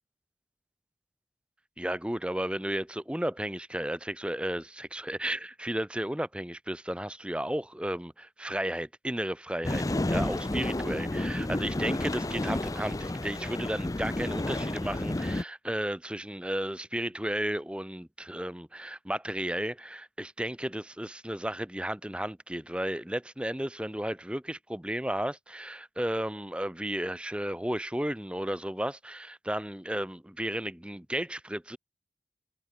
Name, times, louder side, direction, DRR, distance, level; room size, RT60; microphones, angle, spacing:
voice 1, 1.8-13.0 13.2-31.8, right 1 dB, 5° right, 0.9 m, -33 dB
sound 1, 9.6-15.4, left 1 dB, 20° left, 0.5 m, -31 dB
head